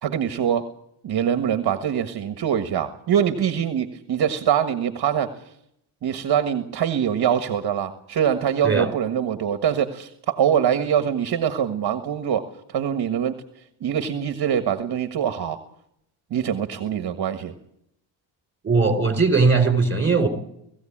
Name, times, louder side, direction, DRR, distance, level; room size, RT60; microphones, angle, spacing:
voice 1, 0.0-0.7 1.0-5.3 6.0-13.4 13.8-15.6 16.3-17.5, right 9 dB, 55° right, 9 dB, 1.6 m, -23 dB
voice 2, 18.6-20.3, right 4 dB, 25° right, 8 dB, 4.1 m, -19 dB
19.5 x 15.5 x 8.7 m, 0.75 s
cardioid pair, 120°, 47 cm